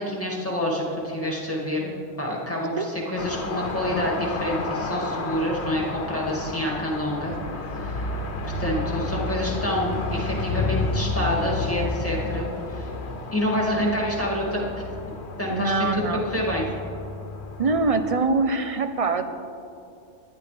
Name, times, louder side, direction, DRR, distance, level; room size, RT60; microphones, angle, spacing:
voice 1, 0.0-12.9 13.3-14.6 15.4-15.9 16.2-16.7, left 1 dB, 10° left, -3 dB, 2.2 m, -28 dB
sound 1, 3.2-18.2, left 3 dB, 85° left, 1.3 m, -31 dB
voice 2, 15.5-16.2 17.6-19.3, right 3 dB, 40° right, 8 dB, 0.6 m, -23 dB
18.5 x 11.5 x 3.4 m, 2.5 s
omnidirectional pair, 1.1 m